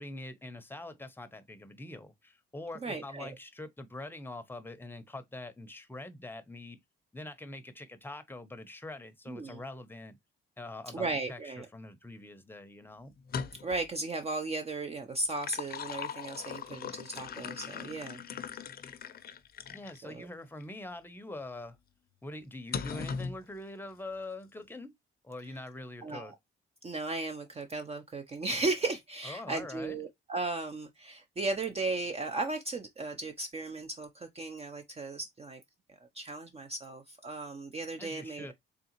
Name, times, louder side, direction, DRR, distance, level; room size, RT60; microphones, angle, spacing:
voice 1, 0.0-6.8 7.1-10.2 10.6-13.1 19.7-21.8 22.2-24.9 25.2-26.3 29.2-30.0 38.0-38.5, left 2 dB, 10° left, 0.7 m, -44 dB
voice 2, 2.8-3.3 9.3-9.6 10.9-11.7 13.6-18.2 20.0-20.3 26.0-26.3 26.8-35.6 36.1-38.5, right 3 dB, 30° right, 0.6 m, -36 dB
sound 1, 13.2-13.9 15.1-20.0 20.6-20.7 22.7-23.4, left 6 dB, 50° left, 0.6 m, -39 dB
3.7 x 3.5 x 2.9 m
cardioid pair, 90°, 20 cm